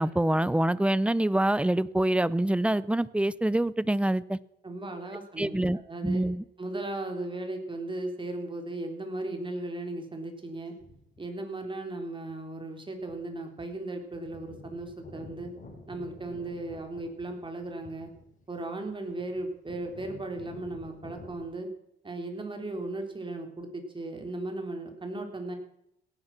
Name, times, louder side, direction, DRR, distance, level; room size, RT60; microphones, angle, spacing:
voice 1, 0.0-4.4 5.4-6.4, right 1 dB, 5° right, 19 dB, 0.6 m, -26 dB
voice 2, 4.6-6.2 6.6-10.7 11.2-15.5 15.9-18.1 18.5-21.7 22.0-25.5, right 2 dB, 25° right, 4 dB, 3.7 m, -36 dB
sound 1, 10.8-11.2 12.3-12.4 13.0-13.4 13.7-13.8 14.0-21.5, left 2 dB, 40° left, 5.5 m, -49 dB
17.5 x 11.0 x 6.0 m, 0.79 s
cardioid pair, 90°, 20 cm